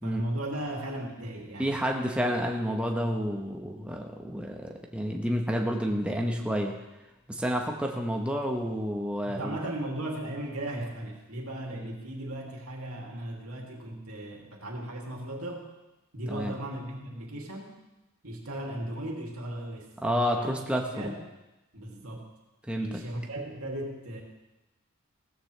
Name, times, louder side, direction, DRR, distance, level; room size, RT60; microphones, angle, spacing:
voice 1, 0.0-1.8 9.2-15.7 16.1-17.8 18.2-19.9 20.3-20.5 20.9-21.2 21.7-22.3 22.8-24.2, right 1 dB, 90° right, 0 dB, 2.7 m, -36 dB
voice 2, 1.6-6.8 7.3-9.6 11.7-11.9 16.3-16.5 20.0-21.1 22.7-23.0, equal, 5° right, 1 dB, 1.1 m, -30 dB
16.5 x 14.0 x 3.4 m, 1.0 s
head